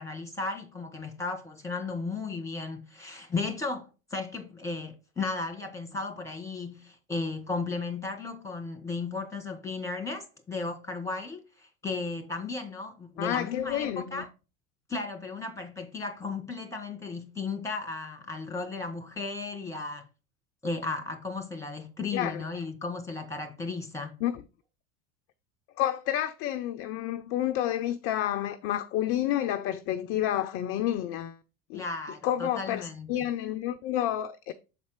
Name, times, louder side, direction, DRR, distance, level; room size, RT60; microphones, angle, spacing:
voice 1, 0.0-14.3 14.9-20.0 20.6-24.1 31.7-33.2, left 3 dB, 5° left, 1.7 m, -35 dB
voice 2, 13.2-14.2 22.1-22.4 24.2-24.4 25.8-31.4 31.7-31.8 32.2-34.5, left 12 dB, 30° left, 0.4 m, -30 dB
7.2 x 4.0 x 5.0 m
figure-of-eight pair, 80°, 46 cm